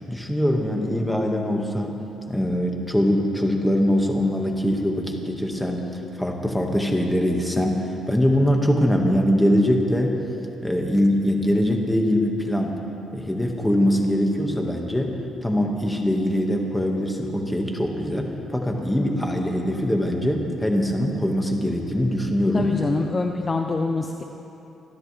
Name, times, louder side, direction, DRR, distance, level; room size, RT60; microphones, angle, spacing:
voice 1, 0.0-2.0 2.3-10.2 10.6-12.8 13.1-22.7, equal, 5° left, 1 dB, 1.9 m, -22 dB
voice 2, 22.5-24.2, left 3 dB, 30° left, 3 dB, 0.8 m, -25 dB
25.5 x 12.0 x 3.5 m, 2.9 s
cardioid pair, 90°, 0 cm